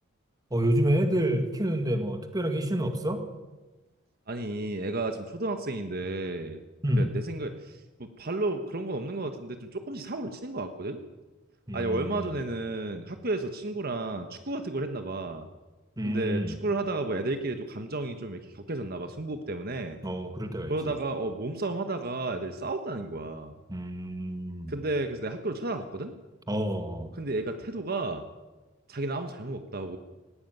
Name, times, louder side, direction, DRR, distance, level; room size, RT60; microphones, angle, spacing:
voice 1, 0.5-3.2 6.8-7.1 11.7-12.3 16.0-16.6 20.0-21.0 23.7-24.8 26.5-27.1, right 1 dB, 20° right, 7 dB, 2.0 m, -28 dB
voice 2, 4.3-6.6 7.0-11.0 11.7-15.5 16.0-20.0 20.7-23.6 24.7-26.1 27.2-28.3 28.9-30.0, right 2 dB, 50° right, 7 dB, 1.3 m, -32 dB
18.5 x 16.5 x 9.2 m, 1.2 s
head